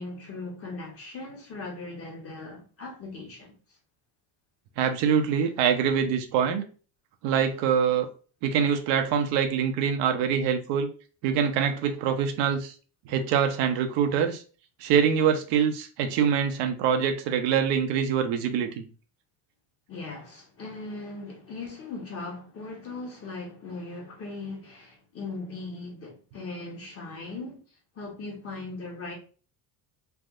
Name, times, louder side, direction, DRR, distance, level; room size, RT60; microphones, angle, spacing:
voice 1, 0.0-3.5 19.9-27.6 27.9-29.1, left 3 dB, 30° left, 1.1 m, -39 dB
voice 2, 4.8-6.6 7.2-8.1 8.4-10.9 11.2-12.7 13.1-14.4 14.8-18.8, right 7 dB, 75° right, 0.7 m, -24 dB
3.4 x 2.5 x 2.4 m
cardioid pair, 125°, 43 cm